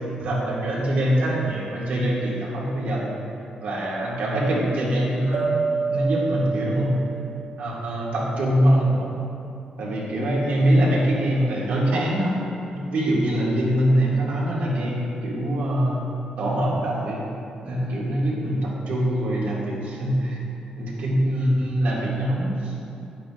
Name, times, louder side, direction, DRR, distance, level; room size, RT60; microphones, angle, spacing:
voice 1, 0.2-3.1 3.6-5.6 5.9-7.0 7.6-9.1 9.8-12.4 12.7-16.0 16.4-17.3 17.6-20.4 20.8-22.7, right 1 dB, 85° right, -6 dB, 2.1 m, -23 dB
sound 1, 5.3-8.3, right 4 dB, 65° right, 1.5 m, -28 dB
11.0 x 8.8 x 2.5 m, 2.7 s
wide cardioid pair, 160°, 3 cm